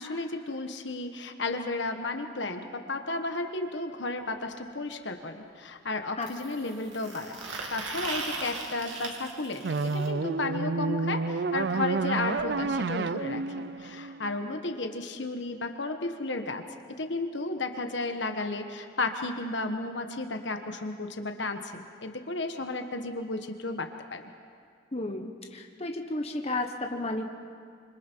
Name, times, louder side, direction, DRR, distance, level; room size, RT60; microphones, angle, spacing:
voice 1, 0.0-7.4 7.7-13.4 13.8-24.2, left 2 dB, 65° left, 6 dB, 1.3 m, -33 dB
sound 1, 4.2-4.3 6.2-10.1 12.0-12.1 12.4-12.5 12.7-12.9 13.8-13.9, right 3 dB, 90° right, 2.6 m, -38 dB
sound 2, 9.6-14.8, right 4 dB, 55° right, 0.5 m, -30 dB
voice 2, 24.9-27.3, left 2 dB, 30° left, 3 dB, 1.2 m, -33 dB
26.0 x 26.0 x 4.6 m, 2.2 s
head